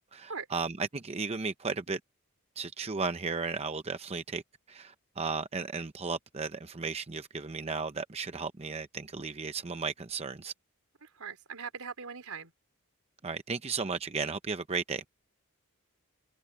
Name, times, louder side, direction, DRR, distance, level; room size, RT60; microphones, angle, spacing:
voice 1, 0.1-2.0 2.6-4.4 4.7-10.5 13.2-15.0, right 4 dB, 30° right, 0.7 m, -35 dB
voice 2, 11.0-12.5, right 5 dB, 75° right, 3.8 m, -41 dB
head